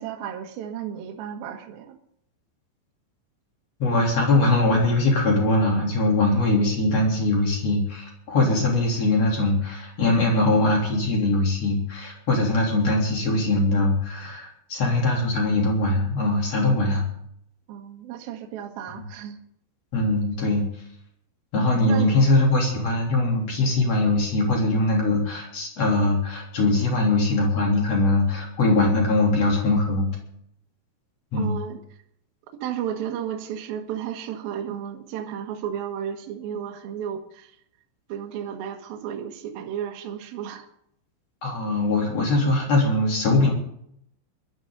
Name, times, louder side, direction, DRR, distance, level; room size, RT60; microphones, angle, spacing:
voice 1, 0.0-1.9 17.7-19.4 21.9-22.1 31.3-32.0 32.6-37.6 38.1-40.7, right 9 dB, 65° right, 3 dB, 2.6 m, -33 dB
voice 2, 3.8-17.0 18.9-19.0 19.9-20.6 21.5-30.1 31.3-31.6 41.4-43.5, left 2 dB, 35° left, -1 dB, 3.9 m, -21 dB
21.5 x 12.5 x 4.0 m, 0.72 s
omnidirectional pair, 6.0 m